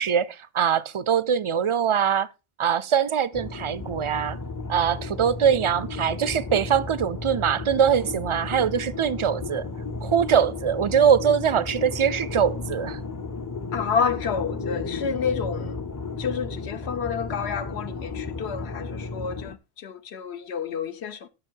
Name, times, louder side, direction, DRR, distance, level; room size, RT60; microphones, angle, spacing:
voice 1, 0.0-2.3 2.6-4.4 4.7-9.7 10.0-13.0, right 8 dB, 45° right, 0.4 m, -22 dB
sound 1, 3.3-19.5, left 3 dB, 25° left, 0.4 m, -34 dB
voice 2, 13.7-15.8 16.2-21.3, left 6 dB, 85° left, 1.1 m, -29 dB
11.0 x 6.4 x 4.5 m
omnidirectional pair, 1.1 m